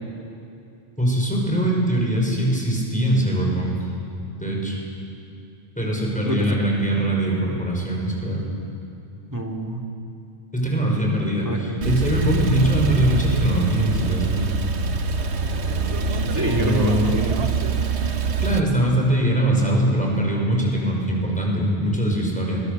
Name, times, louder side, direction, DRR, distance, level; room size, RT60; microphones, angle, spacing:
voice 1, 1.0-3.8 4.4-4.8 5.8-8.4 10.5-14.5 16.5-17.1 18.4-22.6, right 1 dB, 5° left, -2 dB, 5.8 m, -22 dB
voice 2, 9.3-9.8 11.4-11.8 16.1-17.5, right 1 dB, 15° right, 0 dB, 2.7 m, -26 dB
Male speech man speaking / Car / Idling, 11.8-18.6, right 4 dB, 70° right, 1.3 m, -24 dB
26.0 x 22.0 x 7.0 m, 2.7 s
omnidirectional pair, 1.2 m